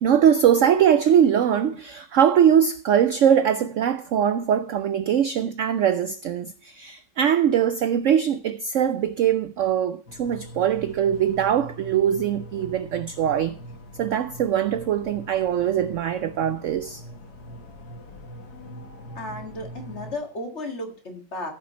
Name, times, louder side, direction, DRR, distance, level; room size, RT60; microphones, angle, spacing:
voice 1, 0.0-13.6 14.0-17.0, right 9 dB, 80° right, 0.6 m, -21 dB
sound 1, 10.1-20.1, equal, 60° left, 2.1 m, -42 dB
voice 2, 19.2-21.5, left 2 dB, 40° left, 2.1 m, -34 dB
14.5 x 5.6 x 4.2 m
omnidirectional pair, 1.9 m